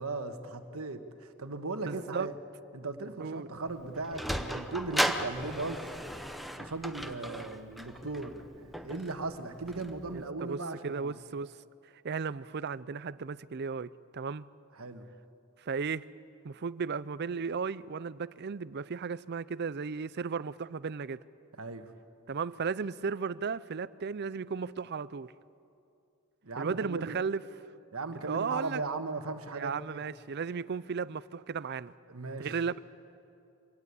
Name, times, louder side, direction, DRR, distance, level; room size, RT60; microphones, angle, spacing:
voice 1, 0.0-2.3 2.7-5.9 6.5-11.1 14.8-15.0 21.6-21.9 26.4-27.2 27.9-30.0 32.1-32.6, right 3 dB, 85° right, 1.4 m, -37 dB
voice 2, 1.9-2.3 3.2-3.5 10.1-11.5 12.0-14.5 15.6-16.0 16.4-21.2 22.3-25.3 26.6-27.4 28.2-28.8 29.5-31.9 32.4-32.8, right 5 dB, 50° right, 0.5 m, -35 dB
Sliding door, 3.7-10.2, equal, ahead, 0.8 m, -36 dB
24.5 x 18.0 x 8.3 m
head